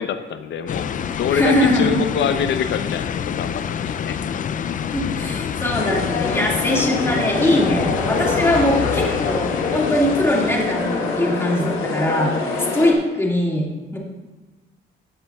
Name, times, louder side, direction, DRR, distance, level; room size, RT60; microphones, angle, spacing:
voice 1, 0.0-4.2, left 7 dB, 65° left, 10 dB, 0.7 m, -25 dB
sound 1, 0.7-11.9, left 8 dB, 40° left, 0.4 m, -27 dB
voice 2, 1.3-2.0 4.9-14.0, left 1 dB, 10° left, -2 dB, 2.0 m, -21 dB
sound 2, 5.7-12.9, left 4 dB, 85° left, 1.4 m, -25 dB
13.5 x 8.0 x 2.3 m, 1.2 s
cardioid pair, 90°, 20 cm